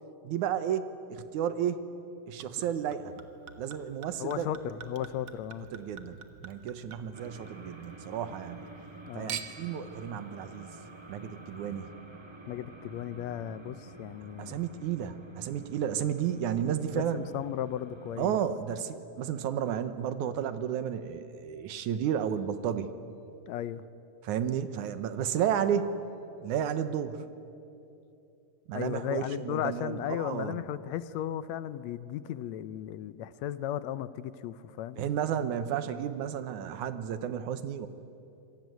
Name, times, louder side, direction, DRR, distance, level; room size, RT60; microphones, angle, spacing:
voice 1, 0.2-1.8 2.3-3.1 3.6-4.5 5.7-8.7 9.2-10.7 11.1-11.9 14.4-17.2 18.2-22.9 24.2-25.9 26.4-27.2 28.7-30.5 35.0-37.9, right 9 dB, 90° right, 11 dB, 2.5 m, -32 dB
Chink clink / Liquid, 2.4-7.9 8.3-8.9 9.3-9.8 10.5-10.6, right 7 dB, 50° right, 1.7 m, -45 dB
voice 2, 4.2-5.7 9.1-9.4 12.5-14.7 16.9-18.4 23.5-23.8 28.7-35.0, left 11 dB, 75° left, 14 dB, 1.9 m, -35 dB
sound 1, 7.1-18.4, right 2 dB, 35° right, 0.4 m, -50 dB
26.5 x 23.0 x 9.4 m, 2.8 s
omnidirectional pair, 3.4 m